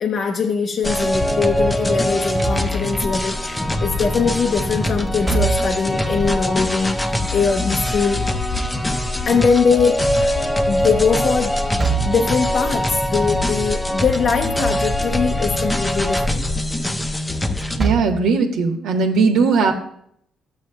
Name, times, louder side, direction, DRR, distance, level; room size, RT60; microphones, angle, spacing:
voice 1, 0.0-8.2 9.3-10.0 10.7-11.6 12.0-16.4, left 5 dB, 55° left, 3 dB, 0.6 m, -21 dB
sound 1, 0.8-17.8, left 1 dB, 15° left, 0.6 m, -22 dB
Slam / Thump thud, 2.1-3.1 5.1-6.0 8.2-9.3 11.6-12.4 14.4-15.0 15.4-15.5 17.5-18.3, right 6 dB, 30° right, 1.0 m, -26 dB
voice 2, 17.8-19.7, right 4 dB, 90° right, 2 dB, 1.3 m, -18 dB
12.5 x 7.9 x 2.3 m, 0.67 s
cardioid pair, 90°, 0 cm